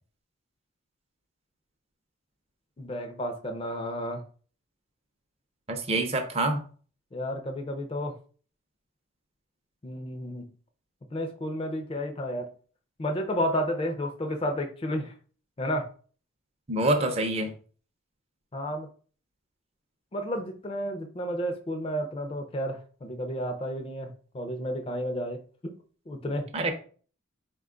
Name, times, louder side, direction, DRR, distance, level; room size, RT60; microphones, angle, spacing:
voice 1, 2.8-4.2 7.1-8.1 9.8-10.5 11.1-12.5 13.0-15.1 15.6-15.9 18.5-18.9 20.1-25.7 26.1-26.7, equal, 25° left, 0.4 m, -32 dB
voice 2, 5.7-6.6 16.7-17.5 26.5-26.7, right 2 dB, 30° right, 0.5 m, -26 dB
4.3 x 2.3 x 3.6 m
head